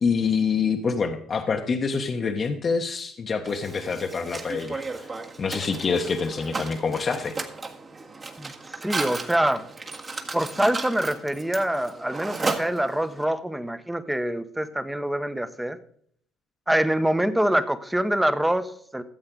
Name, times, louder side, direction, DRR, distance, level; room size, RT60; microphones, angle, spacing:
voice 1, 0.0-5.1 5.4-7.3, left 5 dB, 45° left, 4 dB, 1.0 m, -26 dB
Mechanisms, 3.4-13.2, right 3 dB, 35° right, 1.6 m, -35 dB
voice 2, 8.8-9.7 10.3-15.8 16.7-19.0, right 1 dB, 5° right, 12 dB, 0.9 m, -25 dB
13.5 x 7.8 x 3.8 m, 0.62 s
hypercardioid pair, 60°, 0 cm